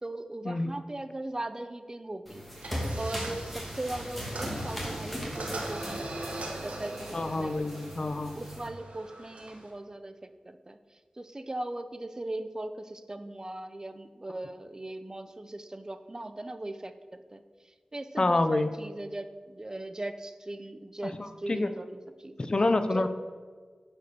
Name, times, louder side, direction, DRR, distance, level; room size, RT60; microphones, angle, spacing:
voice 1, 0.0-2.4 3.0-6.1 6.6-6.9 7.4-7.8 8.4-10.1 10.5-10.8 11.2-16.9 17.3-17.4 17.9-21.1 21.4-22.0 22.2-22.4 22.9-23.1, right 1 dB, 30° right, 10 dB, 0.7 m, -38 dB
sound 1, 2.3-8.7, equal, 5° left, 2.7 m, -38 dB
sound 2, 2.6-9.7, right 2 dB, 90° right, 1.5 m, -41 dB
voice 2, 7.1-8.4 18.2-18.7 21.0-21.7 22.4-23.1, left 2 dB, 45° left, 9 dB, 0.7 m, -27 dB
9.9 x 5.4 x 6.8 m, 1.5 s
wide cardioid pair, 55°, 2 cm